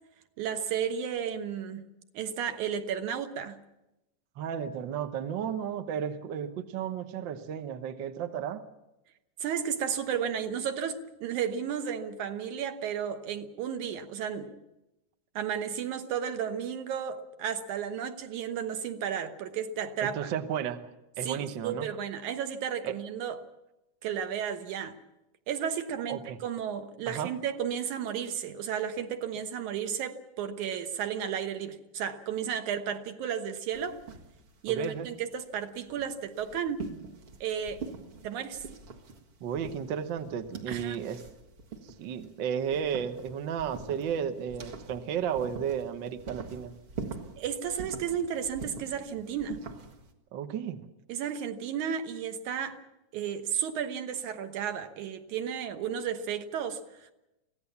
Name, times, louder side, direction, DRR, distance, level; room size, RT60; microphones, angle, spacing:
voice 1, 0.4-1.9 2.1-3.6 9.4-14.6 15.4-20.3 21.2-23.4 24.0-25.0 25.5-34.0 34.6-36.9 37.4-37.8 38.2-38.7 40.7-41.0 47.4-49.6 51.1-52.8 53.1-57.1, right 8 dB, 70° right, 2.5 m, -33 dB
voice 2, 4.4-8.6 20.0-20.8 21.2-21.9 22.8-23.0 26.1-26.4 27.1-27.3 34.7-35.1 39.4-41.2 41.8-46.7 50.3-50.9, right 8 dB, 90° right, 1.0 m, -33 dB
sound 1, 33.7-50.1, right 4 dB, 45° right, 2.2 m, -45 dB
24.0 x 16.5 x 7.2 m
omnidirectional pair, 3.8 m